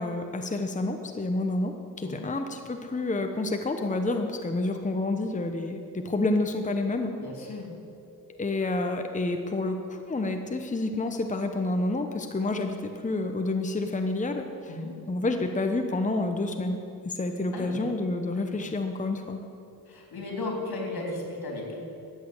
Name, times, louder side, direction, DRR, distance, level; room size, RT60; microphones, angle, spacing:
voice 1, 0.0-7.1 8.3-14.7 15.1-19.4, left 2 dB, 20° left, 5 dB, 0.9 m, -29 dB
voice 2, 2.0-2.3 7.2-7.8 14.7-15.0 17.5-17.9 18.5-18.7 19.9-21.8, left 2 dB, 80° left, 0 dB, 3.7 m, -35 dB
14.0 x 9.4 x 8.0 m, 2.8 s
cardioid pair, 90°, 37 cm